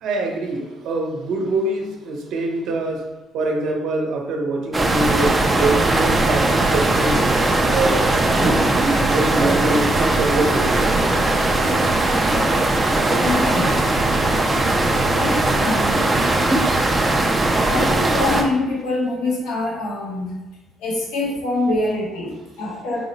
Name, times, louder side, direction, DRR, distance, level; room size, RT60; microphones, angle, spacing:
voice 1, 0.0-3.0 3.3-7.2 7.7-10.9, right 2 dB, 60° right, 1 dB, 0.8 m, -24 dB
sound 1, 4.7-18.4, right 2 dB, 15° right, 0.4 m, -19 dB
voice 2, 13.1-13.8 15.1-15.9 17.6-20.4 20.8-23.1, left 2 dB, 85° left, -3 dB, 0.9 m, -24 dB
4.7 x 2.0 x 3.9 m, 1.1 s
cardioid pair, 170°, 0 cm